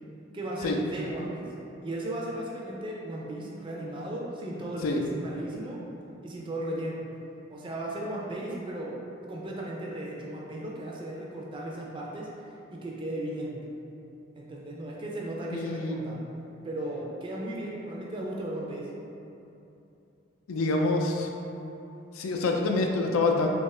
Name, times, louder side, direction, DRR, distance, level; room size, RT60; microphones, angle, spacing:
voice 1, 0.3-1.5 1.8-5.8 6.2-7.0 7.5-9.0 9.3-13.6 14.3-16.3 16.6-18.9, right 1 dB, 25° right, -3 dB, 0.4 m, -36 dB
voice 2, 15.5-16.0 20.5-21.3 22.1-23.5, left 3 dB, 85° left, 1 dB, 0.4 m, -26 dB
3.5 x 3.0 x 3.2 m, 2.9 s
head